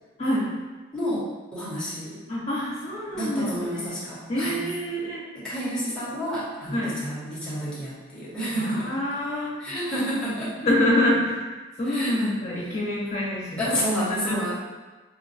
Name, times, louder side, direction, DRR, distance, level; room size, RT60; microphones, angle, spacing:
voice 1, 0.2-0.5 2.3-3.6 4.3-5.2 6.7-7.0 8.6-9.8 10.6-11.4 11.8-13.8 14.3-14.5, left 1 dB, 40° left, -8 dB, 1.0 m, -26 dB
voice 2, 0.9-2.2 3.1-4.6 5.3-8.9 9.6-10.5 11.9-12.2 13.6-14.5, equal, 5° left, -9 dB, 0.9 m, -29 dB
4.2 x 2.2 x 2.6 m, 1.2 s
head